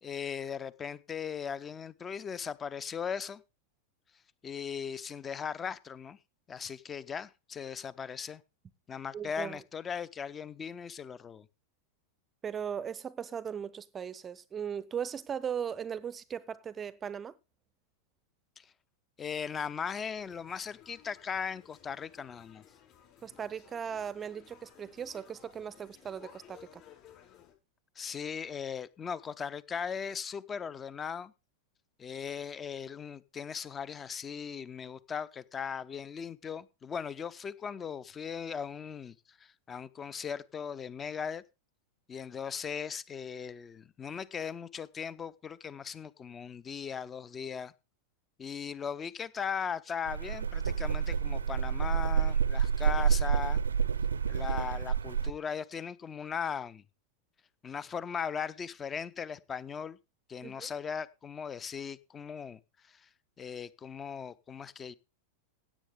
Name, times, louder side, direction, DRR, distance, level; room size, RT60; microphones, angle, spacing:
voice 1, 0.0-3.4 4.4-6.2 6.5-8.4 8.9-11.5 18.6-18.7 19.2-22.6 28.0-31.3 32.0-41.4 42.1-47.7 48.4-53.6 54.3-56.8 57.6-60.0 60.3-62.6 62.9-63.1 63.4-65.0, left 7 dB, 20° left, 0.7 m, -38 dB
voice 2, 9.1-9.6 12.4-17.3 23.2-26.8 60.4-60.7, right 8 dB, 20° right, 0.6 m, -38 dB
sound 1, 20.1-27.5, left 9 dB, 40° left, 5.3 m, -58 dB
sound 2, 50.1-55.3, right 7 dB, 70° right, 0.6 m, -28 dB
16.5 x 8.5 x 3.6 m
figure-of-eight pair, 90°, 0 cm